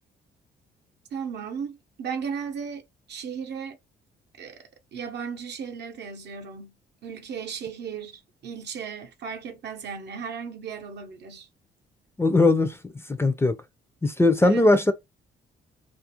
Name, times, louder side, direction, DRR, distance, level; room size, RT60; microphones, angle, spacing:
voice 1, 1.1-3.8 4.4-6.7 7.0-11.5 14.4-14.7, right 6 dB, 60° right, 0.7 m, -36 dB
voice 2, 12.2-12.8 13.2-13.5 14.0-14.9, left 2 dB, 10° left, 0.4 m, -19 dB
2.4 x 2.0 x 2.8 m
cardioid pair, 90°, 20 cm